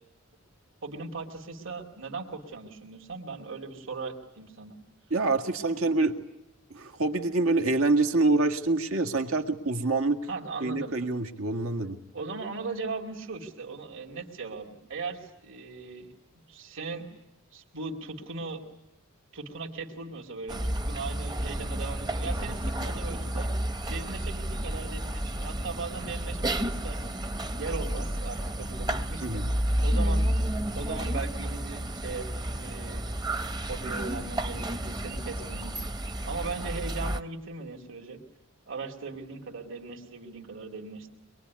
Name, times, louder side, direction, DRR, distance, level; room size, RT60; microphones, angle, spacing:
voice 1, 0.8-4.8 10.3-11.0 12.1-16.1 16.5-17.1 17.5-18.6 19.3-23.5 23.9-27.2 27.6-30.3 30.7-32.3 32.6-33.1 33.7-38.2 38.7-41.1, right 4 dB, 60° right, 2 dB, 2.7 m, -38 dB
voice 2, 5.1-6.2 6.7-10.2 10.6-12.0 29.2-29.5, right 3 dB, 80° right, 5 dB, 1.9 m, -26 dB
sound 1, 20.5-37.2, right 1 dB, 20° right, 0.9 m, -31 dB
24.5 x 22.5 x 9.6 m, 0.93 s
head